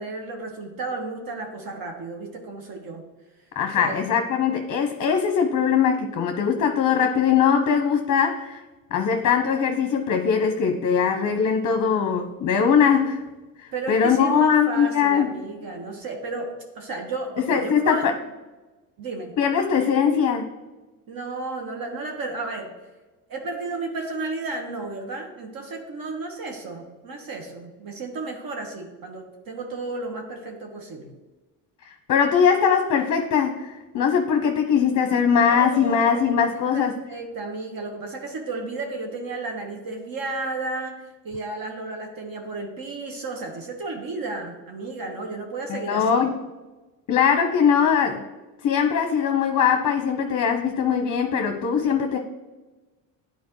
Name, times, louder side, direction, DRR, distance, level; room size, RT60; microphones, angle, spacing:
voice 1, 0.0-3.1 3.8-4.0 13.7-18.1 19.0-19.3 21.1-22.7 23.3-31.1 35.5-36.3 36.7-41.0 41.2-46.3, right 3 dB, 50° right, 2 dB, 1.3 m, -33 dB
voice 2, 3.6-8.6 8.9-13.2 13.6-15.3 17.4-18.1 19.4-20.5 31.8-36.9 45.7-46.3 47.1-48.3 48.6-52.2, left 7 dB, 40° left, 5 dB, 0.8 m, -21 dB
9.4 x 4.3 x 3.0 m, 1.2 s
hypercardioid pair, 65°, 45 cm